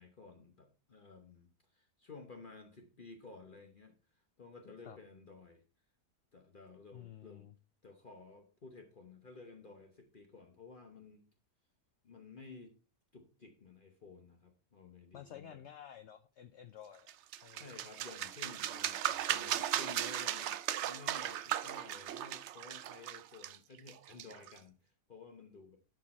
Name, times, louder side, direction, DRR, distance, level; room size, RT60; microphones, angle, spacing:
voice 1, 0.0-4.0 4.4-5.6 6.3-7.5 7.8-11.3 12.0-12.7 13.1-15.6 17.5-25.8, left 4 dB, 40° left, 4 dB, 0.9 m, -54 dB
voice 2, 6.9-7.5 15.1-17.1 17.4-17.7, left 10 dB, 70° left, 11 dB, 0.6 m, -52 dB
sound 1, 17.1-24.6, right 11 dB, 75° right, 0.6 m, -37 dB
11.5 x 4.6 x 4.1 m, 0.35 s
omnidirectional pair, 1.7 m